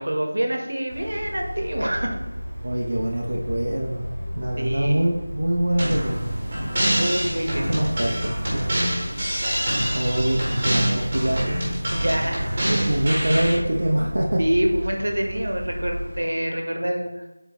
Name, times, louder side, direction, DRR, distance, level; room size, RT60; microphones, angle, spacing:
voice 1, 0.0-2.2 4.6-5.0 6.9-7.9 11.9-12.5 14.4-17.2, right 1 dB, 85° right, 2 dB, 1.3 m, -26 dB
sound 1, 0.9-16.2, equal, 10° left, 2.0 m, -33 dB
voice 2, 2.6-4.1 4.3-6.3 7.5-8.7 9.9-11.5 12.7-14.4, right 1 dB, 60° right, -1 dB, 0.8 m, -24 dB
sound 2, 5.8-13.6, right 1 dB, 25° right, 1.7 m, -26 dB
6.9 x 4.4 x 3.1 m, 1.0 s
figure-of-eight pair, 175°, 0 cm